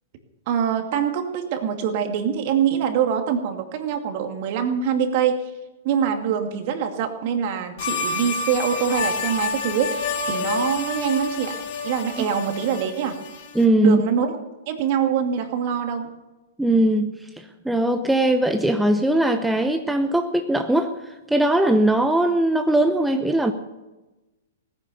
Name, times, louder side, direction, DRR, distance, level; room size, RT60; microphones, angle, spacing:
voice 1, 0.5-5.4 5.8-11.5 11.8-13.2 13.8-14.4 14.7-16.1, right 8 dB, 50° right, 5 dB, 2.3 m, -24 dB
sound 1, 7.8-13.7, left 4 dB, 50° left, 1.9 m, -29 dB
voice 2, 13.5-14.0 16.6-17.1 17.6-23.5, right 1 dB, 5° right, 5 dB, 0.9 m, -20 dB
17.5 x 10.5 x 6.9 m, 1.1 s
hypercardioid pair, 115°, 0 cm